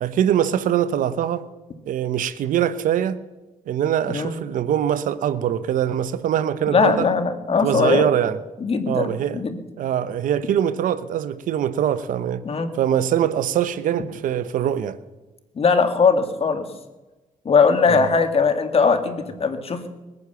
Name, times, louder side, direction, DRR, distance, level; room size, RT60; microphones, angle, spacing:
voice 1, 0.0-1.4 1.9-3.2 3.7-7.1 7.6-8.4 8.9-9.4 9.8-12.4 12.7-15.0 17.9-18.1, right 10 dB, 80° right, 0.9 m, -23 dB
voice 2, 6.7-8.0 8.6-9.6 12.4-12.7 15.6-16.6 17.5-19.9, left 5 dB, 45° left, 2.1 m, -20 dB
21.0 x 9.6 x 7.0 m
cardioid pair, 80°, 14 cm